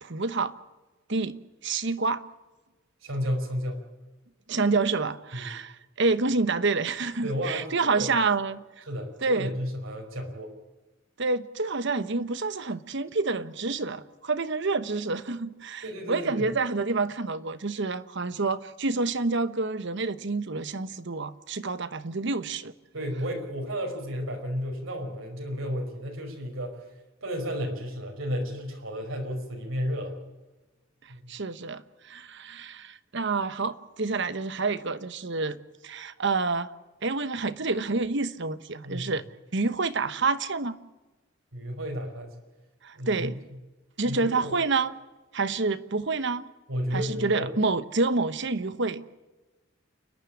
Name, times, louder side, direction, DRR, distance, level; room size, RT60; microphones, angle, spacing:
voice 1, 0.0-0.5 1.1-1.4 1.6-2.2 4.5-8.8 9.2-9.5 11.2-22.7 31.3-35.6 35.8-36.7 37.0-39.2 39.5-40.8 42.8-43.3 44.0-45.0 45.3-46.5 46.9-49.0, right 3 dB, 60° right, 13 dB, 1.1 m, -28 dB
voice 2, 3.0-3.8 5.3-5.5 7.2-8.1 8.9-10.5 15.8-16.5 22.9-26.8 27.2-30.2 31.1-31.2 38.8-39.1 41.5-42.3 42.9-43.3 44.0-44.5 46.7-47.5, equal, 85° right, 1 dB, 5.3 m, -32 dB
30.0 x 10.5 x 10.0 m, 1.1 s
head